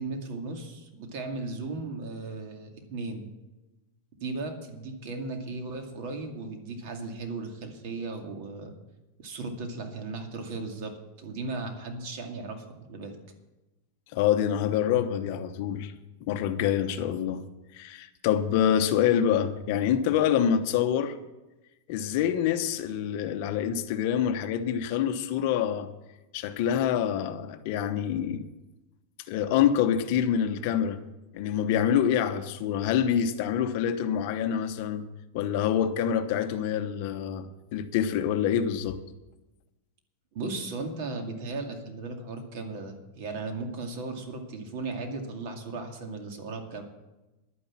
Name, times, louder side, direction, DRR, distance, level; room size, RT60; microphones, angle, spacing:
voice 1, 0.0-3.3 4.2-8.7 9.2-13.2 40.3-46.8, right 3 dB, 50° right, 2.2 m, -36 dB
voice 2, 14.1-15.9 16.3-17.5 17.7-21.2 21.9-25.9 26.3-28.4 29.3-31.0 31.3-35.0 35.3-39.0, left 9 dB, 45° left, 0.9 m, -26 dB
11.0 x 9.8 x 7.4 m
supercardioid pair, 165°, 0 cm